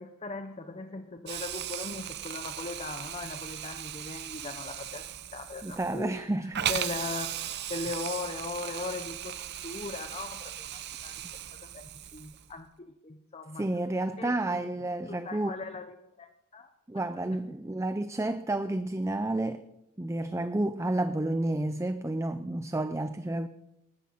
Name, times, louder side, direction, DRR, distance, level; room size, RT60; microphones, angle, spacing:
voice 1, 0.0-5.0 5.3-9.4 9.6-11.2 11.7-13.7 14.2-14.7 15.1-16.7, left 3 dB, 30° left, 0.7 m, -39 dB
Hiss, 1.3-12.5, right 11 dB, 50° right, 0.7 m, -37 dB
voice 2, 5.6-6.7 13.6-15.5 16.9-19.6 20.0-23.5, right 2 dB, 15° right, 0.5 m, -30 dB
19.0 x 13.5 x 5.6 m
head